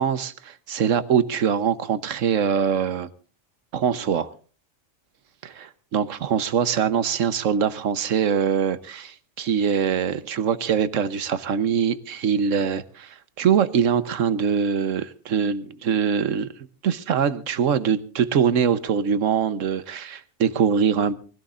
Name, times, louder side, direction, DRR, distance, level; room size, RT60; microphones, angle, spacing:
voice 1, 0.0-3.1 3.7-4.3 5.4-5.7 5.9-16.5 16.8-21.2, right 7 dB, 75° right, 1.3 m, -23 dB
24.0 x 17.0 x 2.5 m
omnidirectional pair, 1.3 m